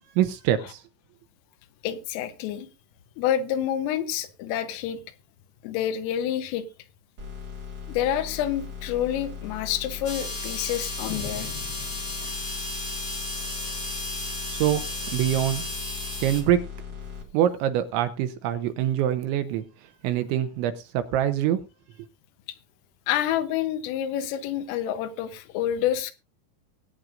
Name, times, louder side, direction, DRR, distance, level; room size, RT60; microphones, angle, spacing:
voice 1, 0.2-0.8 14.5-14.9 15.1-15.7 16.2-16.6 17.3-19.6 20.0-21.6, right 11 dB, 80° right, 10 dB, 2.9 m, -24 dB
voice 2, 1.8-2.7 3.2-5.0 5.6-6.7 7.9-11.5 12.2-12.3 23.1-26.1, left 10 dB, 85° left, 11 dB, 3.6 m, -28 dB
sound 1, 7.2-17.2, left 7 dB, 50° right, 1.2 m, -39 dB
sound 2, 10.0-16.4, left 2 dB, 30° left, 1.0 m, -34 dB
sound 3, 11.0-12.7, left 5 dB, 65° left, 2.4 m, -41 dB
20.5 x 8.9 x 2.5 m, 0.28 s
omnidirectional pair, 5.8 m